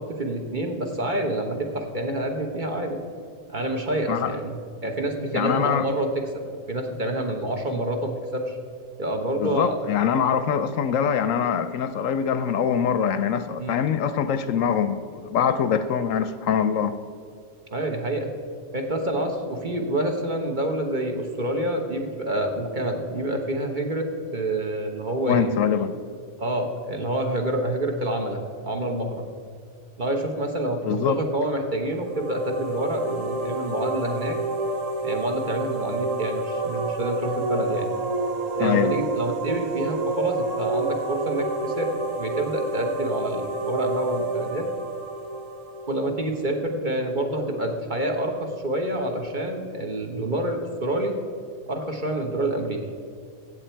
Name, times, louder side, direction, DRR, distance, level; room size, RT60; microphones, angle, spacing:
voice 1, 0.0-3.0 3.5-6.2 6.7-8.6 9.0-9.7 13.6-13.8 17.7-18.3 18.7-24.1 24.3-25.4 26.4-29.3 30.0-34.4 35.0-37.9 38.6-41.9 42.2-44.7 45.9-51.1 51.7-52.8, right 1 dB, 35° right, 2 dB, 1.2 m, -27 dB
voice 2, 5.3-5.9 9.4-16.9 25.2-25.9 30.8-31.2 38.6-39.0, left 7 dB, 70° left, 11 dB, 0.9 m, -23 dB
sound 1, 31.9-46.6, right 3 dB, 70° right, 1.4 m, -29 dB
15.0 x 8.1 x 4.5 m, 2.2 s
omnidirectional pair, 1.5 m